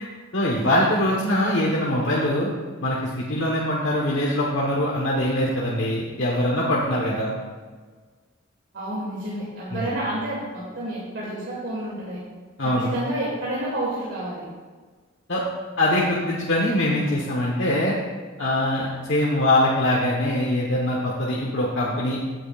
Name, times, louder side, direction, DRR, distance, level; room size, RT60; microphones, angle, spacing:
voice 1, 0.3-2.5 2.8-7.3 9.7-10.0 12.6-12.9 15.3-15.4 15.8-17.9 18.4-22.2, left 1 dB, 70° left, -3 dB, 1.4 m, -23 dB
voice 2, 8.7-12.2 12.6-14.4, right 1 dB, 70° right, -8 dB, 2.8 m, -29 dB
16.5 x 8.8 x 2.5 m, 1.5 s
head